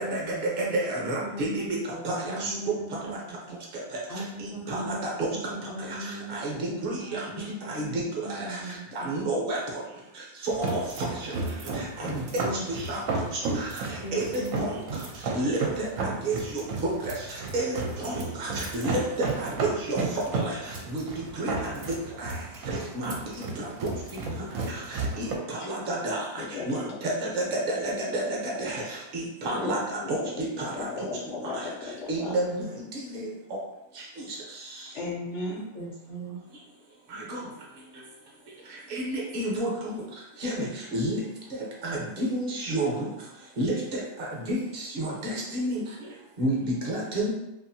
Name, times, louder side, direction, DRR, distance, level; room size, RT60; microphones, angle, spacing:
voice 1, 0.0-3.6 4.1-5.0 5.3-9.3 12.0-12.6 14.0-14.6 35.7-36.4, right 1 dB, 45° left, -6 dB, 0.5 m, -39 dB
voice 2, 0.6-1.8 2.0-2.5 3.1-3.2 3.7-4.0 4.4-5.3 5.9-7.2 7.6-8.6 8.9-9.8 10.4-11.5 11.7-12.2 12.7-13.0 13.3-14.8 15.3-22.4 22.9-23.9 24.7-31.1 31.4-31.6 32.1-33.6 34.3-34.4 37.1-37.4 38.9-40.0 40.4-41.2 41.8-43.1 43.6-45.8 46.4-47.3, right 1 dB, 45° right, -3 dB, 0.8 m, -31 dB
sound 1, 10.5-25.3, right 3 dB, 75° right, 1.0 m, -33 dB
voice 3, 26.4-27.0 28.2-28.3 29.5-29.8 30.2-30.3 30.7-32.3 34.9-35.7, left 3 dB, 60° left, -4 dB, 0.8 m, -35 dB
2.8 x 2.5 x 2.7 m, 0.93 s
omnidirectional pair, 1.5 m